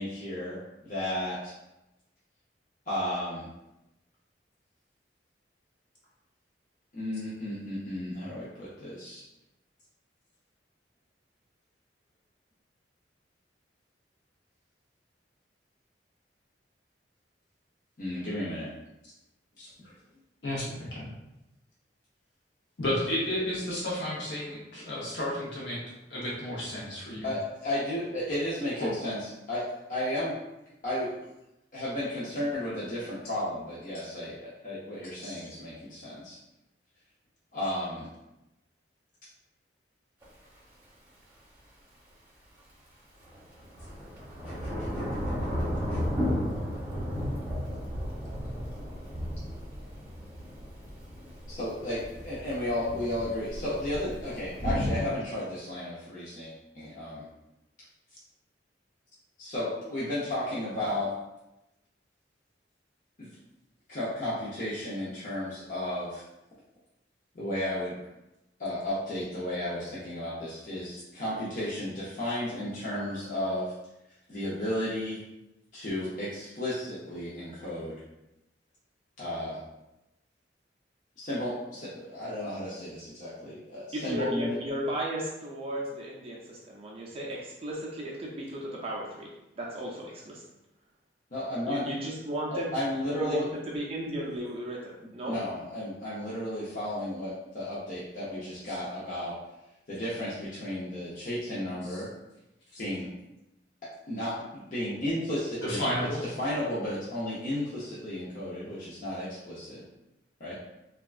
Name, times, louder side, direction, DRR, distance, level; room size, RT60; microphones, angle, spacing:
voice 1, 0.0-1.5 2.9-3.5 6.9-9.2 18.0-18.7 27.2-29.2 29.5-29.6 29.9-30.3 30.8-31.1 31.7-36.4 37.5-38.1 44.4-44.5 45.9-46.0 51.5-57.3 59.4-61.1 63.2-63.3 63.9-66.2 67.3-68.0 68.6-73.7 74.3-75.2 75.7-78.0 79.2-79.6 81.2-84.6 91.3-91.8 92.5-93.4 95.2-99.3 99.9-102.1 102.8-103.1 104.1-105.9 106.2-109.8 110.4-110.5, left 1 dB, 45° left, -9 dB, 0.6 m, -33 dB
voice 2, 19.6-19.9 20.4-21.1 22.8-25.8 26.1-27.3 28.8-28.9 35.2-35.5 98.7-98.8 101.9-102.0 102.7-102.8 105.6-106.2, left 1 dB, 75° left, -5 dB, 0.7 m, -32 dB
Thunder / Rain, 40.2-40.3 43.2-55.0, equal, 10° right, 0.8 m, -34 dB
voice 3, 83.9-89.3 89.6-90.4 91.7-92.7 92.9-95.4, right 1 dB, 30° right, -3 dB, 0.4 m, -35 dB
3.4 x 2.2 x 2.3 m, 0.93 s
head